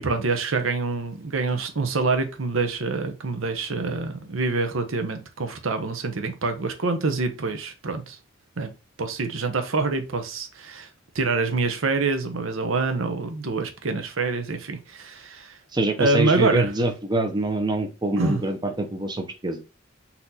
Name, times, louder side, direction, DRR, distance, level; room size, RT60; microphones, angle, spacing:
voice 1, 0.0-8.2 8.6-8.7 9.0-10.9 11.1-15.6 16.0-16.7 18.2-18.4, right 3 dB, 85° right, 0.8 m, -26 dB
voice 2, 15.7-19.6, right 1 dB, 20° right, 0.6 m, -25 dB
4.2 x 2.9 x 3.9 m
head